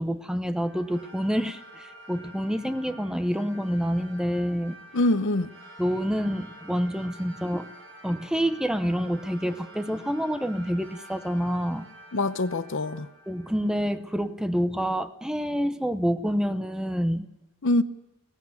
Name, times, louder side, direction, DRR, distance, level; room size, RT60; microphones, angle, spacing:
voice 1, 0.0-4.8 5.8-7.7 8.0-11.9 13.3-17.3, equal, 5° right, 0.7 m, -27 dB
sound 1, 0.5-14.3, right 1 dB, 60° right, 7.5 m, -48 dB
voice 2, 4.9-5.5 12.1-13.1 17.6-17.8, left 2 dB, 60° left, 0.8 m, -24 dB
18.0 x 15.0 x 9.4 m
head